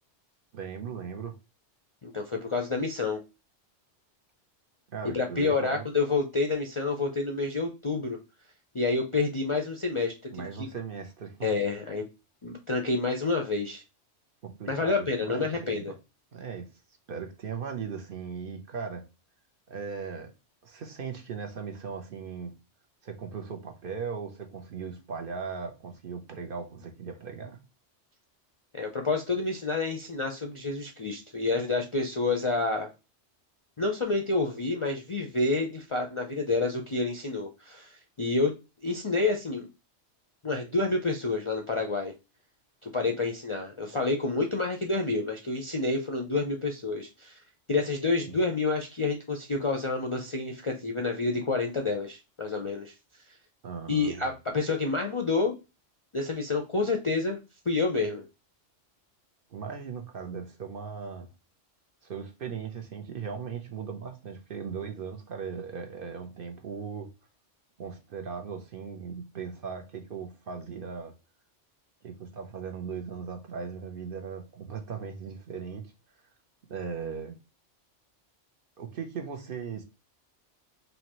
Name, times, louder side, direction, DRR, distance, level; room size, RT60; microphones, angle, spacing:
voice 1, 0.5-1.4 4.9-5.9 10.3-11.5 14.4-15.9 16.3-16.7 17.1-19.1 19.7-20.3 20.6-22.5 23.0-27.6 48.3-48.4 53.6-54.3 59.5-61.3 62.0-67.1 67.8-71.1 72.0-75.9 76.7-77.4 78.8-79.8, right 6 dB, 55° right, 0.8 m, -38 dB
voice 2, 2.0-3.2 5.1-8.2 8.7-10.1 11.4-12.0 12.4-13.8 14.7-15.9 28.7-32.9 33.8-38.5 38.8-39.7 40.4-42.1 42.8-47.4 47.7-52.9 53.9-55.5 56.1-57.4 57.7-58.2, left 3 dB, 45° left, 0.4 m, -28 dB
4.3 x 2.7 x 2.9 m
omnidirectional pair, 1.2 m